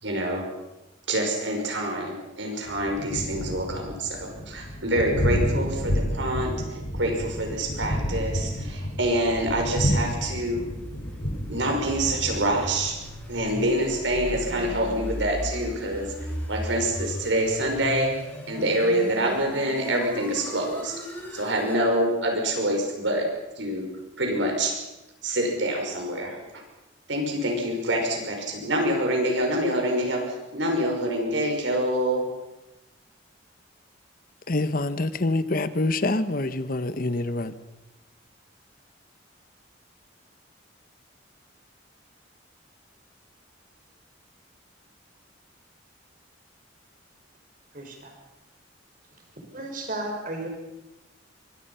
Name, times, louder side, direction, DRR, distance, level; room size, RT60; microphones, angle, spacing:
voice 1, 0.0-0.5 1.1-6.6 6.9-10.6 11.5-13.0 13.3-16.1 16.5-18.1 18.5-20.9 21.3-23.3 23.6-23.9 24.2-24.8 25.2-26.6 27.1-32.3, right 1 dB, 70° right, 5.8 m, -26 dB
Thunder, 2.7-17.9, equal, 85° left, 5.5 m, -31 dB
sound 1, 9.7-21.9, equal, 10° left, 6.8 m, -37 dB
voice 2, 34.5-37.5, left 2 dB, 50° left, 1.1 m, -26 dB
voice 3, 47.7-48.1 49.5-50.5, right 2 dB, 45° right, 5.6 m, -33 dB
24.5 x 23.0 x 5.7 m
head